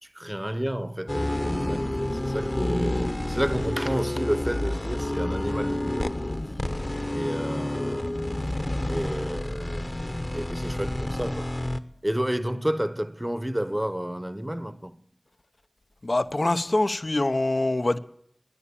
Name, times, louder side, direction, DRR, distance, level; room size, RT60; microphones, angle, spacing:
voice 1, 0.0-6.2 7.1-8.3 8.9-9.9 10.3-11.5 12.0-15.0, equal, 15° right, 1.0 m, -31 dB
sound 1, 1.1-11.8, left 1 dB, 40° left, 1.1 m, -29 dB
voice 2, 16.0-18.0, left 2 dB, 60° left, 0.8 m, -24 dB
17.0 x 10.0 x 8.5 m
wide cardioid pair, 45°, 0 cm